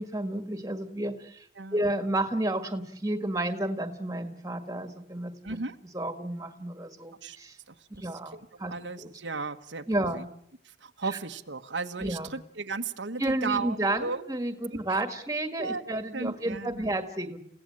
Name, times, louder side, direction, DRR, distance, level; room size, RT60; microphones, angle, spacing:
voice 1, 0.0-1.5 1.7-5.6 5.9-7.6 8.0-9.1 9.9-10.3 11.0-11.2 12.0-12.3 13.2-17.4, right 1 dB, 20° right, 8 dB, 1.7 m, -31 dB
voice 2, 5.4-5.8 7.2-7.4 7.7-10.2 10.6-14.2 15.6-16.9, right 4 dB, 90° right, 6 dB, 1.4 m, -35 dB
30.0 x 16.5 x 8.7 m, 0.75 s
head